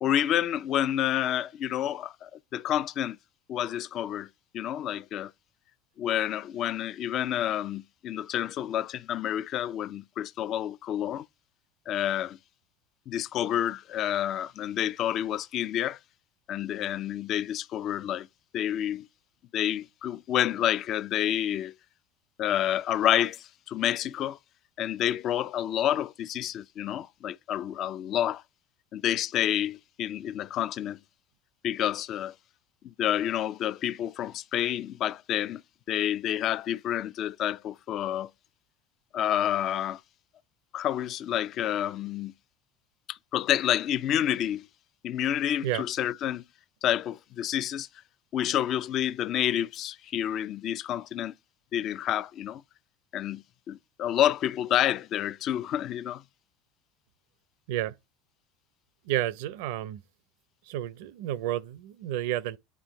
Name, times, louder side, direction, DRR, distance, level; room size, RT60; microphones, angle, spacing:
voice 1, 0.0-3.2 3.5-4.3 4.5-5.3 6.0-11.3 11.9-12.4 13.1-16.0 16.5-18.3 18.5-19.1 19.5-21.7 22.4-24.4 24.8-28.4 28.9-31.0 31.6-32.3 32.8-35.6 35.9-38.3 39.1-40.0 40.7-42.3 43.1-44.7 45.0-46.4 46.8-47.9 48.3-51.3 51.7-52.6 53.1-56.2, left 11 dB, 45° left, 0.4 m, -29 dB
voice 2, 59.0-60.0 60.7-62.6, right 13 dB, 75° right, 0.6 m, -31 dB
9.7 x 3.7 x 3.0 m
supercardioid pair, 115°, 0 cm